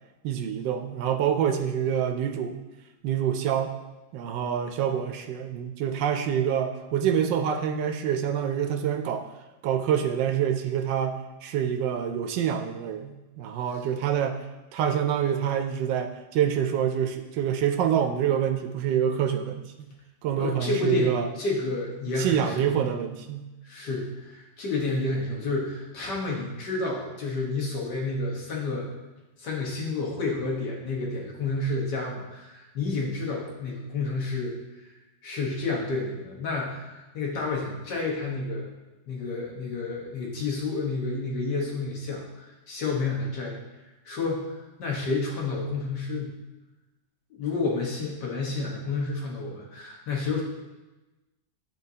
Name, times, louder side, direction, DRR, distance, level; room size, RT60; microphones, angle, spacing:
voice 1, 0.2-2.6 3.0-3.7 4.1-9.2 9.6-14.4 14.7-19.9 20.2-21.3 22.2-23.4, right 9 dB, 90° right, 6 dB, 1.3 m, -26 dB
voice 2, 20.4-22.9 23.6-28.9 29.4-34.5 35.2-38.7 39.1-43.6 44.1-44.5 44.8-46.3 47.3-50.4, left 3 dB, 70° left, -2 dB, 1.9 m, -30 dB
9.8 x 4.6 x 2.8 m, 1.1 s
omnidirectional pair, 1.9 m